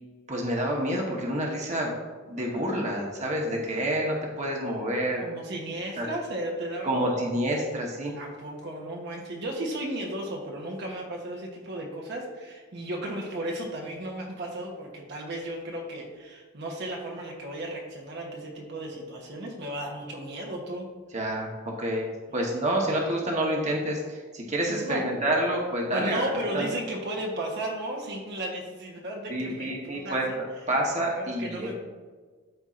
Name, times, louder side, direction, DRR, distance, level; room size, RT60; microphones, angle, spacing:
voice 1, 0.3-1.9 2.3-5.3 6.0-6.1 6.8-8.1 21.1-21.5 21.8-26.3 26.5-26.8 29.3-31.8, right 1 dB, 35° right, -1 dB, 1.1 m, -28 dB
voice 2, 5.2-7.2 8.1-20.9 22.3-22.4 24.8-25.0 25.9-30.6 31.1-31.8, right 1 dB, 55° right, -1 dB, 1.0 m, -35 dB
12.5 x 4.4 x 2.5 m, 1.5 s
head